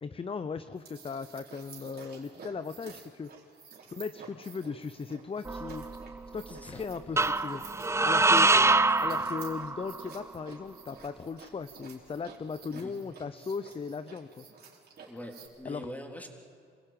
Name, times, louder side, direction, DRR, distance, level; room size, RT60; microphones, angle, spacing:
voice 1, 0.0-3.3 3.9-5.8 6.3-7.6 8.0-8.6 9.0-14.4 15.6-15.9, left 5 dB, 30° left, 12 dB, 0.8 m, -37 dB
sound 1, 0.8-15.5, right 5 dB, 50° right, 4.3 m, -51 dB
sound 2, 5.5-6.3 7.2-10.0, right 3 dB, 15° right, 0.6 m, -25 dB
voice 2, 6.5-7.2 8.5-9.1 12.7-12.9 15.1-16.3, equal, 10° left, 3 dB, 3.6 m, -45 dB
26.5 x 16.0 x 9.1 m, 2.4 s
cardioid pair, 90°, 20 cm